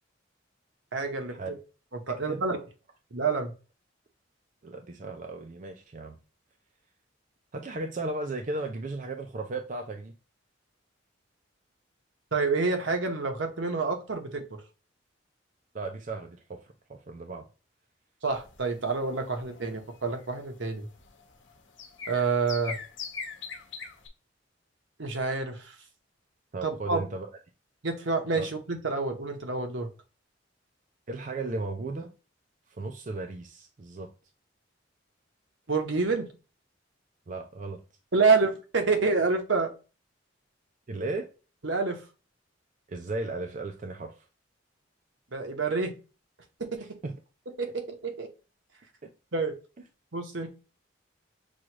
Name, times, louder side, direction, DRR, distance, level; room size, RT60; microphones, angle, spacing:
voice 1, 0.9-1.3 2.1-2.6 3.1-3.5 12.3-14.6 18.2-20.9 22.1-22.8 25.0-25.7 26.6-27.0 27.8-29.9 35.7-36.3 38.1-39.7 41.6-42.0 45.3-45.9 46.6-46.9 47.6-48.3 49.3-49.5 50.1-50.5, right 4 dB, 75° right, 1.0 m, -28 dB
voice 2, 4.6-6.2 7.5-10.1 15.7-17.4 26.5-27.3 28.4-28.5 31.1-32.1 32.7-34.1 37.3-37.8 40.9-41.3 42.9-44.3 46.8-47.2 49.0-49.1, right 2 dB, 40° right, 0.5 m, -35 dB
sound 1, 18.3-24.1, left 5 dB, 75° left, 1.0 m, -42 dB
6.2 x 2.4 x 2.9 m
head